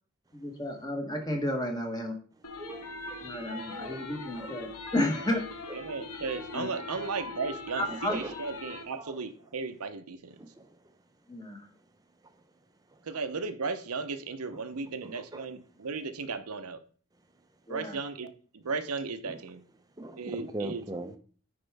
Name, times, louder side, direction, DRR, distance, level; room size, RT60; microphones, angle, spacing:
voice 1, 0.3-2.1 3.2-5.4 6.5-6.7 7.7-8.1 11.3-11.6 17.7-17.9, left 1 dB, 20° left, 1.1 m, -32 dB
sound 1, 2.4-8.8, left 2 dB, 85° left, 1.1 m, -41 dB
voice 2, 2.6-3.3 3.7-4.5 5.7-5.8 7.9-8.3 8.9-9.2 10.4-10.8 15.0-15.4 19.3-19.4 20.0-21.2, right 2 dB, 15° right, 0.6 m, -41 dB
voice 3, 5.7-10.4 13.0-16.8 17.7-19.6 20.2-20.8, right 4 dB, 85° right, 0.8 m, -35 dB
9.4 x 4.4 x 3.5 m
head